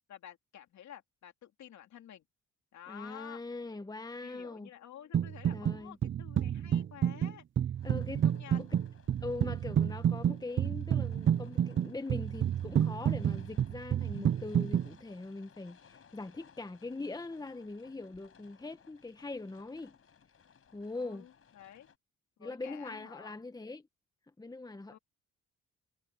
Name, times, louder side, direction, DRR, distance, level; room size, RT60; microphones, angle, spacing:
voice 1, 0.0-2.2 2.7-3.4 4.2-7.4 8.2-8.6 20.9-21.9 22.4-23.4 24.9-25.0, left 10 dB, 65° left, 3.0 m, -51 dB
voice 2, 2.9-4.7 5.5-6.0 7.8-8.3 8.5-8.7 9.2-20.0 20.7-21.2 22.4-23.9 24.4-25.0, left 3 dB, 15° left, 1.4 m, -42 dB
sound 1, 5.1-5.8 6.0-14.9, right 9 dB, 40° right, 0.6 m, -29 dB
sound 2, 7.8-22.0, left 7 dB, 45° left, 6.7 m, -62 dB
cardioid pair, 90°, 30 cm